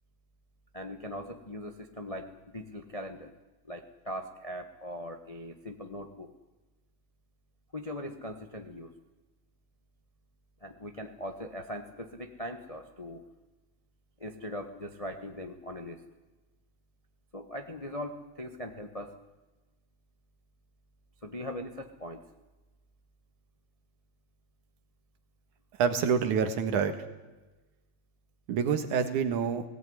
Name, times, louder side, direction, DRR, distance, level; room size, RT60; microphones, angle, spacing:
voice 1, 0.7-3.3 3.6-6.3 7.7-8.9 10.6-13.2 14.2-16.0 17.3-19.1 21.2-22.2, left 1 dB, 35° left, 5 dB, 0.5 m, -40 dB
voice 2, 25.8-26.9 28.5-29.6, right 6 dB, 85° right, 9 dB, 3.1 m, -27 dB
18.5 x 18.0 x 9.7 m, 1.2 s
omnidirectional pair, 3.4 m